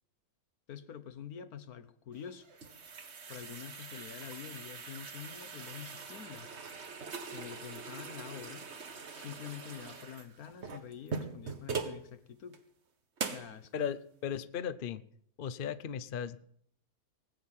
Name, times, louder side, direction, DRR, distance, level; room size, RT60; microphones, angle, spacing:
voice 1, 0.7-2.5 3.3-6.5 7.3-8.7 9.1-12.6 13.2-13.9, left 8 dB, 75° left, 1.4 m, -46 dB
sound 1, 2.2-12.0 12.5-12.6 13.2-13.5, right 5 dB, 50° right, 1.5 m, -42 dB
voice 2, 13.7-15.0 15.4-16.4, left 8 dB, 50° left, 0.7 m, -36 dB
19.5 x 8.1 x 7.4 m
omnidirectional pair, 1.6 m